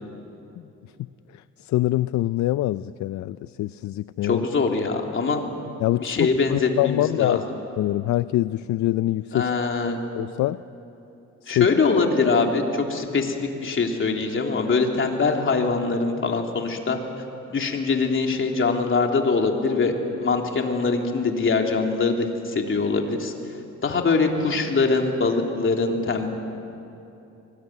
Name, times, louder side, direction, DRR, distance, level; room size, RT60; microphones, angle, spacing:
voice 1, 1.3-4.5 5.8-7.4 7.8-9.5 10.2-10.6 11.4-11.7, left 15 dB, 70° left, 15 dB, 0.5 m, -24 dB
voice 2, 4.2-5.4 6.0-7.4 9.3-10.0 11.5-17.0 17.5-23.3 23.8-26.3, left 4 dB, 40° left, 2 dB, 3.4 m, -23 dB
24.5 x 21.5 x 9.4 m, 2.8 s
cardioid pair, 90°, 30 cm